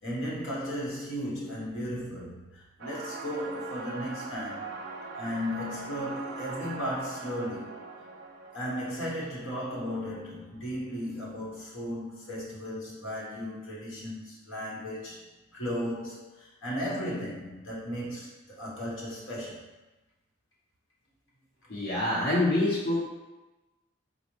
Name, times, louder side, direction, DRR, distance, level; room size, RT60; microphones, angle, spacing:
voice 1, 0.0-4.7 5.2-7.7 8.5-15.2 15.5-19.6, equal, 85° left, -5 dB, 1.0 m, -35 dB
sound 1, 2.8-10.3, right 3 dB, 60° right, 0.4 m, -42 dB
voice 2, 21.7-23.0, left 1 dB, 60° left, -8 dB, 0.8 m, -26 dB
4.0 x 2.0 x 3.0 m, 1.1 s
head